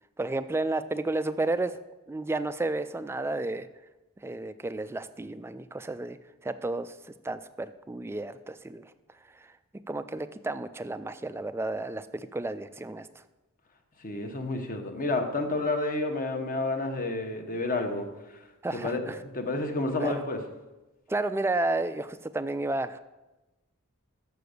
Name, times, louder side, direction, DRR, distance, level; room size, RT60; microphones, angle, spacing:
voice 1, 0.2-1.8 2.1-3.7 4.2-6.2 6.4-8.9 9.3-9.5 9.9-13.1 18.6-19.2 20.0-20.1 21.1-23.0, right 2 dB, 10° right, 12 dB, 0.3 m, -32 dB
voice 2, 14.0-18.1 18.8-19.0 19.3-20.4, left 2 dB, 40° left, 4 dB, 1.0 m, -30 dB
6.8 x 6.8 x 6.5 m, 1.1 s
head